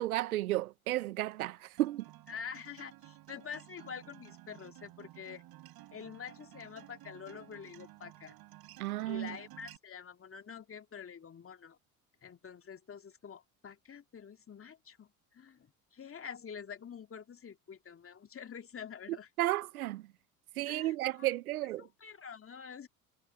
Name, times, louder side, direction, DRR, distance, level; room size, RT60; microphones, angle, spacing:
voice 1, 0.0-2.0 8.8-9.3 19.4-20.0 20.6-21.9, right 16 dB, 80° right, 1.4 m, -33 dB
Acoustic guitar, 1.8-9.8, right 15 dB, 55° right, 6.0 m, -54 dB
voice 2, 2.3-5.4 5.9-8.4 9.1-11.8 12.2-19.3 20.7-21.3 21.8-22.9, left 7 dB, 30° left, 2.5 m, -47 dB
hypercardioid pair, 65°, 43 cm